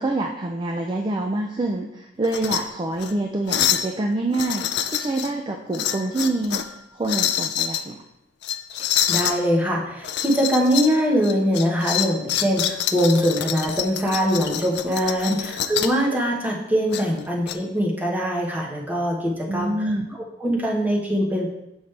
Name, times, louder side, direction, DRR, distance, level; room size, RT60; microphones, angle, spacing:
voice 1, 0.0-6.6 6.9-8.0 15.3-15.4 19.5-20.1, right 2 dB, 25° right, 2 dB, 0.4 m, -26 dB
sound 1, 2.2-2.6 3.0-3.1 3.5-3.9 4.3-5.3 5.7-6.7 7.0-7.8 8.4-9.4 10.0-10.9 11.2-16.0 16.9-17.6, left 10 dB, 60° left, 0.4 m, -26 dB
voice 2, 9.1-19.9 20.4-21.5, equal, 10° right, -3 dB, 1.1 m, -22 dB
7.1 x 5.1 x 3.3 m, 0.86 s
head